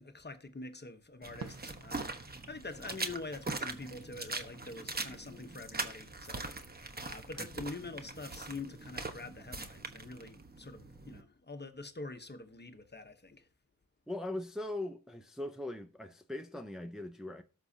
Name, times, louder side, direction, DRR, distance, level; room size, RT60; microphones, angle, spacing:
voice 1, 0.0-6.5 7.0-13.5, left 3 dB, 30° left, 1.1 m, -45 dB
sound 1, 1.2-11.2, right 3 dB, 30° right, 1.1 m, -42 dB
Fireworks, 1.4-4.0 4.3-6.3, right 4 dB, 55° right, 0.9 m, -54 dB
voice 2, 14.1-17.4, left 1 dB, ahead, 0.7 m, -40 dB
18.5 x 6.2 x 2.8 m
wide cardioid pair, 110°, 32 cm